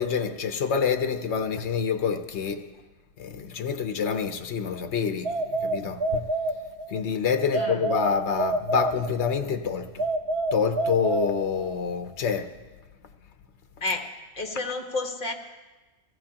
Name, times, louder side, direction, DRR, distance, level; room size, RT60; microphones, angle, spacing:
voice 1, 0.0-2.6 3.2-6.2 6.9-10.0 10.5-12.5, left 6 dB, 80° left, 1.1 m, -27 dB
sound 1, 5.2-7.0 7.5-9.4 10.0-11.9, right 2 dB, 70° right, 1.2 m, -28 dB
voice 2, 7.5-8.0 13.8-15.3, left 3 dB, 50° left, 1.6 m, -31 dB
23.0 x 16.5 x 2.9 m
omnidirectional pair, 1.1 m